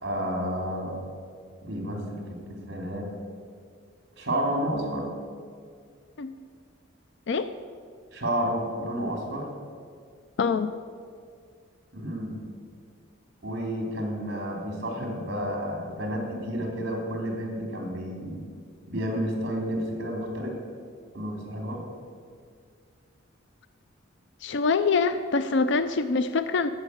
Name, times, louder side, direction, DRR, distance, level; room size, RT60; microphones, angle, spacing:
voice 1, 0.0-1.0 1.6-2.2 2.5-3.1 4.2-5.1 8.1-9.4 11.9-12.3 13.4-18.4 18.9-20.5 21.1-21.8, equal, 55° right, 1 dB, 3.1 m, -30 dB
voice 2, 10.4-10.7 24.4-26.7, left 4 dB, 60° left, 11 dB, 0.4 m, -24 dB
11.0 x 7.5 x 8.4 m, 2.1 s
head